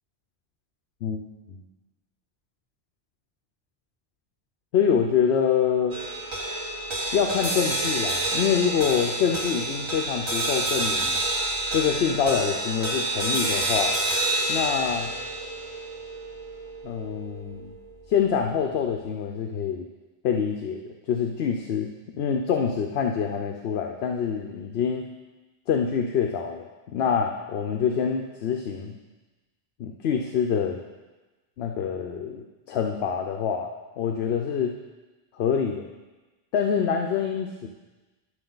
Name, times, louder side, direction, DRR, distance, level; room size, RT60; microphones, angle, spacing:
voice 1, 1.0-1.6 4.7-6.0 7.1-11.2 11.7-14.0 14.5-15.1 16.8-17.7 18.1-19.8 20.2-20.8 21.1-25.1 25.7-26.7 26.9-29.0 29.8-30.8 31.6-33.7 34.0-34.7 35.4-35.9 36.5-37.7, left 7 dB, 70° left, 3 dB, 0.9 m, -26 dB
sound 1, 5.9-18.4, right 2 dB, 75° right, 2.1 m, -28 dB
12.0 x 6.3 x 3.9 m, 1.2 s
omnidirectional pair, 1.1 m